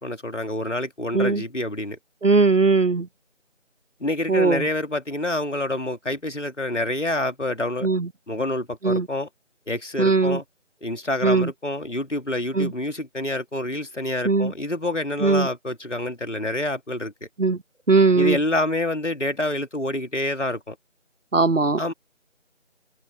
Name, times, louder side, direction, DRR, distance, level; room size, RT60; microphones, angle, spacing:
voice 1, 0.0-2.0 4.0-7.9 8.3-9.3 9.7-10.4 10.8-17.3 18.1-20.8 21.8-21.9, left 1 dB, 70° left, 2.8 m, -27 dB
voice 2, 2.2-3.1 4.3-4.7 7.8-8.1 8.8-9.1 10.0-10.4 11.2-11.5 12.5-12.7 14.2-14.5 15.2-15.5 17.4-17.6 17.9-18.4 21.3-21.8, right 4 dB, 85° right, 1.4 m, -19 dB
figure-of-eight pair, 175°, 37 cm